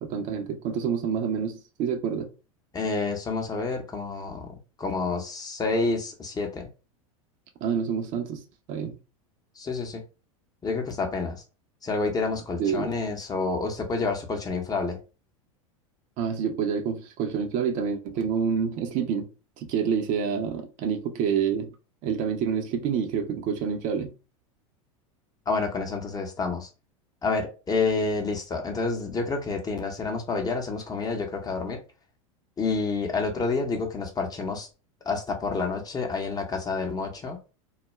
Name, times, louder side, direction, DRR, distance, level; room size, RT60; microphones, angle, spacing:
voice 1, 0.0-2.3 7.6-8.4 8.7-9.0 12.6-12.9 16.2-19.3 19.6-21.7 22.0-24.1, right 7 dB, 45° right, 0.6 m, -27 dB
voice 2, 2.7-6.7 9.6-10.0 10.6-11.4 11.8-15.0 25.5-26.7 27.2-31.8 32.6-34.7 35.1-37.4, left 4 dB, 20° left, 0.7 m, -29 dB
2.3 x 2.1 x 3.0 m
hypercardioid pair, 95°, 18 cm